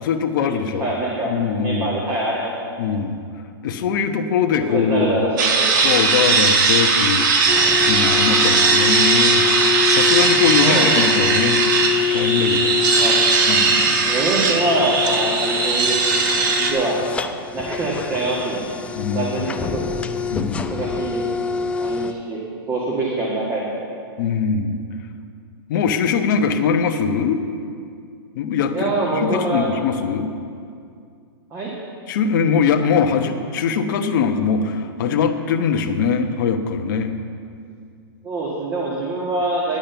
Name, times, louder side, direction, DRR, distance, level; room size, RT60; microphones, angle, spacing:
voice 1, 0.0-0.9 1.2-1.9 2.8-3.2 3.6-5.2 5.8-7.5 7.9-9.4 9.9-11.6 12.1-12.8 13.5-14.2 18.9-19.3 20.3-20.8 24.2-24.8 25.7-27.4 28.3-28.8 29.1-30.3 32.1-37.1, left 6 dB, 50° left, 5 dB, 1.0 m, -21 dB
voice 2, 0.8-1.3 1.6-2.7 4.6-5.7 10.6-10.9 13.0-13.3 14.1-16.1 16.4-17.0 17.5-18.6 19.1-19.9 20.7-21.2 21.8-22.4 22.7-23.8 28.7-29.7 31.5-31.7 38.2-39.8, right 2 dB, 25° right, -4 dB, 1.8 m, -24 dB
sound 1, 5.4-16.7, right 4 dB, 55° right, 1.6 m, -18 dB
sound 2, 7.5-22.1, left 7 dB, 10° left, 0.4 m, -26 dB
10.5 x 8.7 x 6.9 m, 2.3 s
hypercardioid pair, 140°, 13 cm